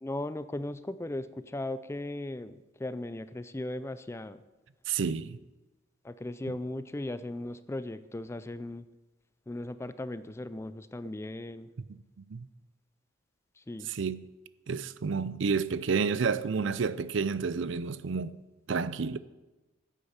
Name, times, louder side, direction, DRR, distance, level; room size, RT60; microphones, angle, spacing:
voice 1, 0.0-4.4 6.0-8.9 9.5-11.7 13.6-13.9, left 1 dB, 15° left, 0.4 m, -37 dB
voice 2, 4.9-5.4 11.9-12.5 13.9-14.2 14.7-18.4 18.7-19.2, right 5 dB, 65° right, 0.5 m, -30 dB
9.9 x 8.3 x 7.1 m
head